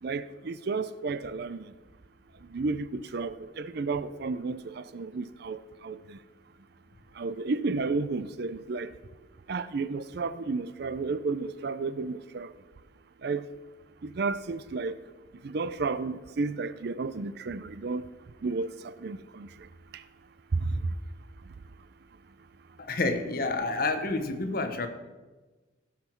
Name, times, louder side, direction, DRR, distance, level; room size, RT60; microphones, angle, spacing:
voice 1, 0.0-1.7 2.4-6.2 7.1-8.9 9.5-12.5 13.2-13.5 14.0-15.0 15.4-18.1 18.4-19.7 19.9-20.0 20.5-20.8, right 3 dB, 55° right, 0.4 m, -32 dB
voice 2, 22.8-24.9, left 3 dB, 45° left, 0.9 m, -29 dB
16.5 x 5.9 x 4.5 m
head